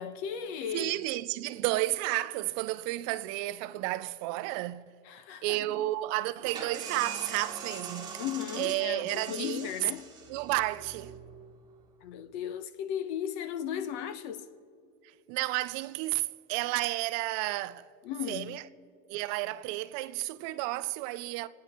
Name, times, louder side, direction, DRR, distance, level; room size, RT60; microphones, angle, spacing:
voice 1, 0.0-0.9 5.0-5.8 8.2-10.1 12.0-14.5 18.0-18.6, left 9 dB, 65° left, 1.0 m, -36 dB
voice 2, 0.7-4.8 5.4-8.2 8.5-9.7 10.3-11.1 15.3-17.9 18.3-18.6 19.1-21.5, right 17 dB, 50° right, 0.5 m, -32 dB
sound 1, 6.4-11.9, right 6 dB, 10° right, 1.8 m, -42 dB
28.0 x 9.6 x 4.3 m
supercardioid pair, 160°, 36 cm